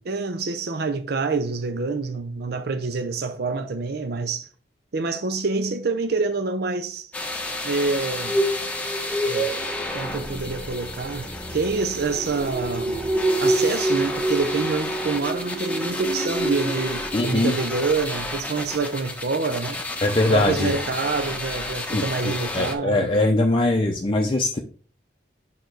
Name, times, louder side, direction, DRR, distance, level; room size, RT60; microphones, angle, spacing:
voice 1, 0.1-4.5 4.9-7.1 7.6-8.4 9.3-9.5 9.9-13.0 13.4-19.8 20.3-23.1, right 4 dB, 60° right, 0.6 m, -27 dB
sound 1, 7.1-22.7, left 2 dB, 10° left, 1.0 m, -32 dB
sound 2, 8.1-17.2 17.5-17.8 18.1-18.2, right 2 dB, 20° right, 0.9 m, -27 dB
voice 2, 17.1-17.5 20.0-20.7 21.9-24.6, left 2 dB, 30° left, 0.6 m, -22 dB
5.7 x 4.6 x 4.5 m
head